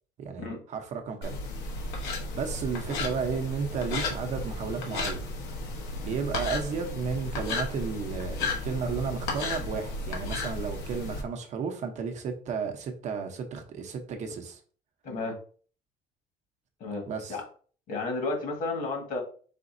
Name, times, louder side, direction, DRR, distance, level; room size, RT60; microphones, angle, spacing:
voice 1, 0.2-1.3 1.8-2.1 2.3-5.3 6.0-14.6 17.1-17.4, right 5 dB, 45° right, 5 dB, 0.7 m, -33 dB
sound 1, 1.2-11.2, left 2 dB, 85° left, 1.1 m, -34 dB
voice 2, 15.0-15.4 16.8-17.0 17.3-17.4 17.9-19.2, left 3 dB, 55° left, 2 dB, 1.6 m, -32 dB
5.0 x 4.0 x 2.6 m, 0.42 s
cardioid pair, 170°, 17 cm